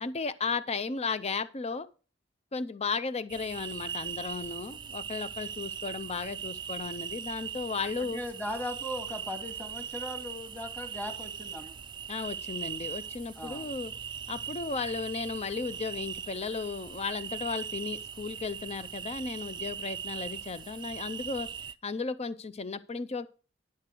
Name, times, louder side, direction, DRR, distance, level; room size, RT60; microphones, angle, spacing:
voice 1, 0.0-1.9 2.5-8.2 12.1-13.9 14.3-21.5 21.8-23.3, left 4 dB, 35° left, 0.6 m, -35 dB
sound 1, 3.3-21.7, right 7 dB, 25° right, 0.4 m, -40 dB
voice 2, 8.0-11.8 13.4-13.7, left 1 dB, 10° left, 1.9 m, -38 dB
10.5 x 6.6 x 4.5 m
head